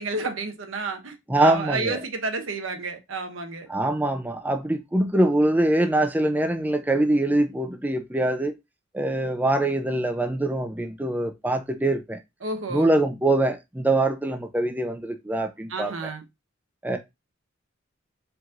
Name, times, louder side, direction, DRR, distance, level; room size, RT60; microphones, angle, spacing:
voice 1, 0.0-3.7 12.4-12.9 15.7-16.2, right 3 dB, 90° right, 0.9 m, -30 dB
voice 2, 1.3-2.0 3.7-8.5 8.9-12.2 12.7-15.9 16.8-17.0, right 1 dB, 10° right, 0.5 m, -23 dB
4.6 x 2.7 x 3.7 m
head